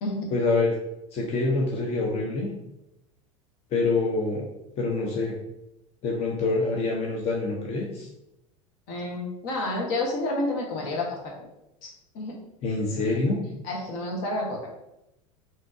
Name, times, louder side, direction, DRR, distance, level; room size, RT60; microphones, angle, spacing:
voice 1, 0.3-0.8 1.1-2.5 3.7-4.5 4.8-5.3 6.0-8.1 12.6-13.4, left 3 dB, 35° left, -2 dB, 0.6 m, -26 dB
voice 2, 8.9-11.2 11.8-12.4 13.6-14.7, left 2 dB, 60° left, -1 dB, 1.1 m, -30 dB
3.6 x 2.7 x 2.5 m, 0.87 s
hypercardioid pair, 90°, 18 cm